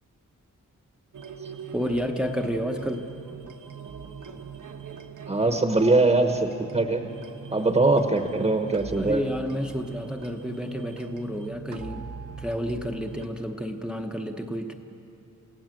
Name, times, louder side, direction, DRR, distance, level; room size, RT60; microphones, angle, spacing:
sound 1, 1.1-13.3, right 6 dB, 75° right, 1.3 m, -41 dB
voice 1, 1.7-3.1 9.0-12.1 12.4-14.7, equal, 5° right, 4 dB, 0.8 m, -30 dB
voice 2, 5.3-7.0 7.5-9.2, right 2 dB, 20° right, 5 dB, 1.0 m, -22 dB
28.5 x 17.0 x 7.7 m, 2.9 s
wide cardioid pair, 175°, 31 cm